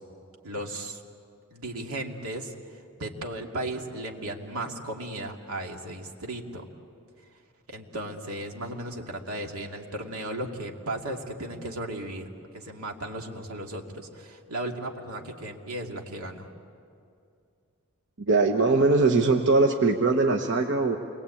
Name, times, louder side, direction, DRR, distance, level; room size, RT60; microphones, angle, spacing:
voice 1, 0.4-1.0 1.5-2.5 3.0-6.7 7.7-16.5, right 1 dB, 80° right, 2 dB, 2.5 m, -35 dB
voice 2, 18.2-21.0, right 3 dB, 55° right, 2 dB, 1.2 m, -21 dB
29.0 x 22.0 x 8.6 m, 2.4 s
head